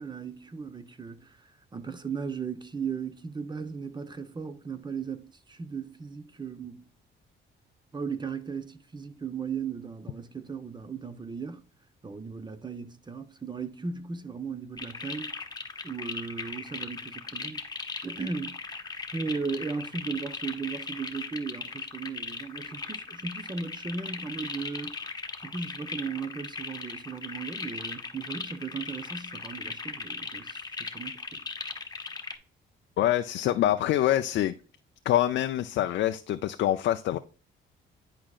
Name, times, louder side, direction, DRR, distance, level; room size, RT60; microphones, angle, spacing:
voice 1, 0.0-6.9 7.9-11.6 12.0-15.3 15.8-17.6 18.0-18.6 19.1-25.1 25.4-31.4, right 5 dB, 20° right, 0.8 m, -36 dB
sound 1, 14.8-32.4, left 4 dB, 20° left, 0.9 m, -38 dB
voice 2, 33.0-34.5 35.1-37.2, left 12 dB, 65° left, 0.4 m, -25 dB
10.5 x 4.9 x 2.4 m
cardioid pair, 90°, 20 cm